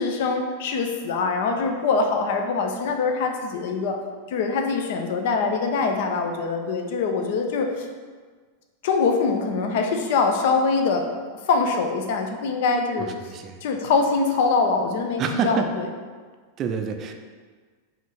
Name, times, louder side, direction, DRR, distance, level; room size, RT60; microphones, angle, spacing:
voice 1, 0.0-4.0 4.3-7.9 8.8-11.1 11.5-13.3 13.6-15.9, left 4 dB, 50° left, 4 dB, 0.5 m, -23 dB
voice 2, 13.0-13.6 15.2-15.7 16.6-17.1, right 6 dB, 30° right, 5 dB, 0.4 m, -27 dB
5.0 x 2.5 x 3.5 m, 1.5 s
figure-of-eight pair, 90°, 0 cm